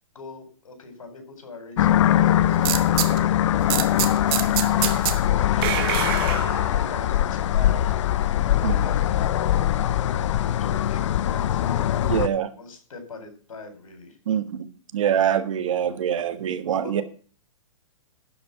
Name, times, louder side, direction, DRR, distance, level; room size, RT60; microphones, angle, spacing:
voice 1, 0.1-8.0 8.4-14.2 16.8-17.0, left 3 dB, 85° left, 6 dB, 4.3 m, -42 dB
sound 1, 1.8-12.3, left 11 dB, 60° left, 0.6 m, -22 dB
sound 2, 2.6-3.2 3.7-5.2 5.6-7.0, right 13 dB, 45° right, 1.1 m, -26 dB
voice 2, 12.1-12.5 14.3-14.7 14.9-17.0, right 9 dB, 70° right, 11 dB, 1.4 m, -24 dB
11.5 x 5.2 x 8.1 m, 0.42 s
hypercardioid pair, 140°, 17 cm